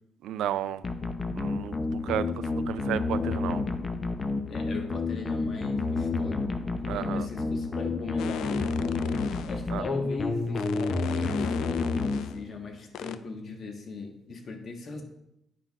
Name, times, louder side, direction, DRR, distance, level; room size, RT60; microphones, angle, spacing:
voice 1, 0.2-0.8 1.3-2.3 2.7-3.6 6.9-7.3 9.7-9.8, right 11 dB, 85° right, 15 dB, 0.3 m, -32 dB
sound 1, 0.8-12.7, left 3 dB, 30° left, 0.6 m, -30 dB
voice 2, 4.5-6.4 6.8-8.6 9.4-11.6 12.2-15.0, left 3 dB, 50° left, 3 dB, 1.3 m, -39 dB
sound 2, 8.2-9.6 10.6-12.4 12.9-13.2, left 10 dB, 85° left, 0.3 m, -38 dB
9.9 x 5.6 x 2.4 m, 0.82 s
cardioid pair, 90°, 0 cm